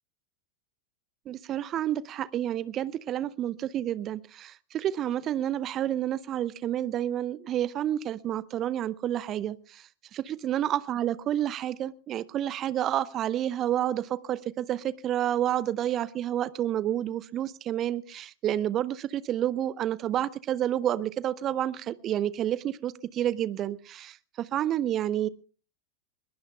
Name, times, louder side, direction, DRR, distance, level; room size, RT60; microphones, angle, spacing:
voice 1, 1.3-25.3, right 11 dB, 30° right, 0.7 m, -29 dB
22.5 x 20.5 x 2.2 m
figure-of-eight pair, 90°, 0 cm